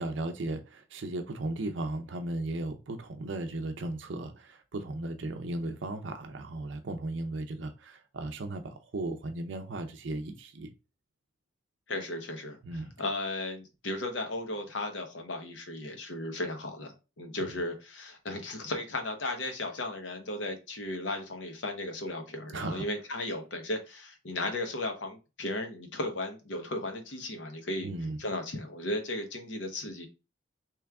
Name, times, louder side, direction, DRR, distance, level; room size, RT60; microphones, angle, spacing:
voice 1, 0.0-10.7 12.6-12.9 17.4-17.6 22.5-22.8 27.8-28.2, right 2 dB, 70° right, 0.5 m, -36 dB
voice 2, 11.9-12.6 13.0-27.9 28.2-30.1, left 2 dB, 70° left, 0.9 m, -35 dB
3.5 x 3.1 x 3.5 m
head